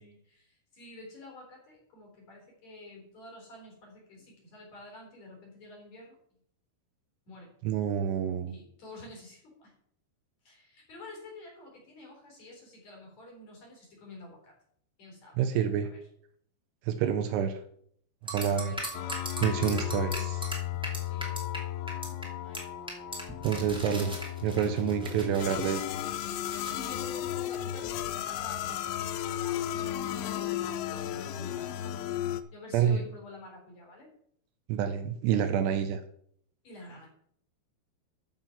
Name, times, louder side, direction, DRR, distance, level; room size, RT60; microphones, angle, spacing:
voice 1, 0.0-6.2 7.2-7.5 8.5-9.7 10.4-14.6 15.0-15.4 15.8-16.0 17.0-17.1 18.4-19.2 20.1-20.5 21.0-21.5 22.4-22.8 23.3-23.4 23.7-24.3 25.0-25.6 26.7-32.2 32.5-34.1 36.6-37.1, left 2 dB, 40° left, -1 dB, 4.8 m, -49 dB
voice 2, 7.6-8.5 15.4-15.9 16.9-17.6 18.2-18.7 19.4-20.4 23.4-24.1 24.4-25.8 32.7-33.0 34.7-36.0, right 8 dB, 80° right, 8 dB, 2.7 m, -28 dB
sound 1, 18.3-21.6 21.9-22.2 22.5-22.6 22.9-26.9, right 1 dB, 5° right, 0.5 m, -39 dB
sound 2, 18.9-32.4, left 12 dB, 85° left, 2.1 m, -34 dB
13.5 x 5.8 x 5.8 m, 0.66 s
omnidirectional pair, 5.1 m